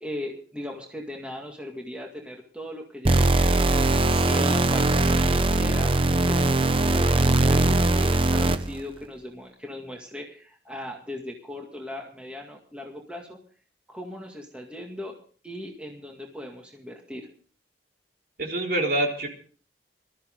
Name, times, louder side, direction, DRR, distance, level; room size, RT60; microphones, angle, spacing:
voice 1, 0.0-3.6 4.1-13.4 13.9-15.2 15.4-17.3, left 1 dB, 5° right, 0 dB, 2.0 m, -38 dB
sound 1, 3.1-8.8, right 2 dB, 30° right, 0.8 m, -21 dB
voice 2, 18.4-19.3, right 1 dB, 55° right, 0 dB, 4.0 m, -25 dB
21.0 x 13.5 x 3.8 m, 0.43 s
head